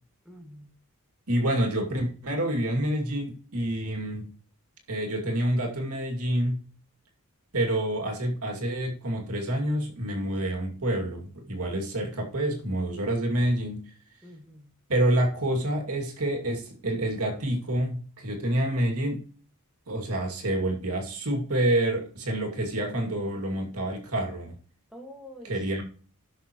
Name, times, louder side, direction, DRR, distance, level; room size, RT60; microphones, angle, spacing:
voice 1, 0.2-0.7 14.2-14.7 24.9-25.5, equal, 5° right, 1.6 m, -46 dB
voice 2, 1.3-4.3 4.9-6.6 7.5-13.9 14.9-19.2 19.9-24.5 25.4-25.8, right 1 dB, 80° right, 2.3 m, -28 dB
17.0 x 6.3 x 3.0 m
head